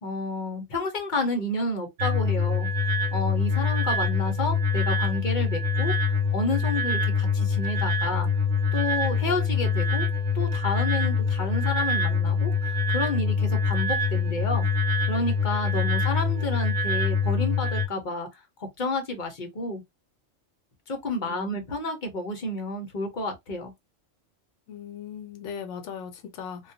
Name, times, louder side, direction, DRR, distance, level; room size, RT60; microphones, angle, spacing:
voice 1, 0.0-2.7 3.1-5.9 6.3-8.3 8.7-10.1 10.3-14.7 15.1-18.3 18.6-19.8 20.9-23.7, left 2 dB, 45° left, 0.8 m, -30 dB
sound 1, 2.0-17.9, left 4 dB, 75° right, 1.0 m, -25 dB
voice 2, 21.2-21.7 24.7-26.7, left 7 dB, 70° left, 0.9 m, -39 dB
2.3 x 2.2 x 2.6 m
omnidirectional pair, 1.3 m